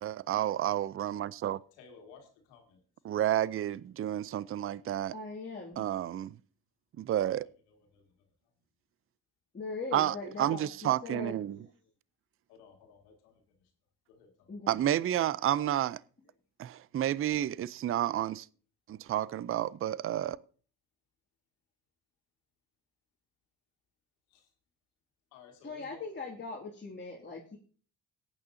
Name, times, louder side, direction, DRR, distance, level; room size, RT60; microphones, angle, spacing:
voice 1, 0.0-1.6 3.0-5.1 5.8-6.4 7.0-7.5 9.9-11.6 14.7-16.0 16.6-18.5 18.9-20.4, right 12 dB, 30° right, 0.5 m, -30 dB
voice 2, 1.7-2.8 7.1-8.5 9.7-9.8 12.5-13.7 14.1-14.5 24.3-24.5 25.3-26.1, left 5 dB, 85° left, 2.2 m, -57 dB
voice 3, 5.1-5.9 9.5-11.7 14.5-14.8 25.6-27.6, left 3 dB, 25° left, 2.4 m, -41 dB
18.0 x 9.0 x 2.7 m
hypercardioid pair, 65°, 45 cm